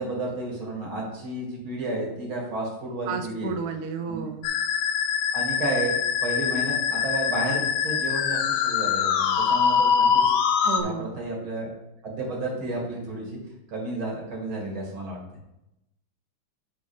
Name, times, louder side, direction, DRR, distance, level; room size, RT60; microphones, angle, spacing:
voice 1, 0.0-3.5 4.1-4.3 5.3-10.4 10.8-11.7 12.0-13.4 13.7-15.2, right 2 dB, 90° right, -3 dB, 3.0 m, -32 dB
voice 2, 3.1-4.5 10.6-11.2, right 5 dB, 65° right, 7 dB, 1.0 m, -32 dB
Musical instrument, 4.4-10.8, left 7 dB, 85° left, 1.5 m, -23 dB
8.2 x 4.5 x 5.0 m, 0.89 s
omnidirectional pair, 2.2 m